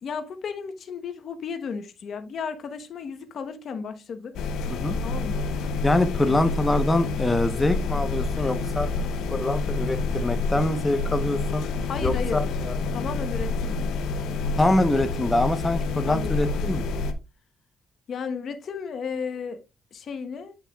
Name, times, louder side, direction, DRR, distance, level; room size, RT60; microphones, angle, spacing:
voice 1, 0.0-4.5 5.0-5.5 11.9-12.4 12.9-13.8 16.1-16.4 18.1-19.6 19.9-20.6, left 6 dB, 60° left, 1.0 m, -34 dB
sound 1, 4.3-17.1, left 3 dB, 85° left, 0.8 m, -28 dB
voice 2, 5.8-9.0 9.3-11.7 12.0-12.7 14.6-16.9, left 1 dB, 15° left, 0.9 m, -24 dB
8.3 x 5.8 x 2.3 m
cardioid pair, 90°, 0 cm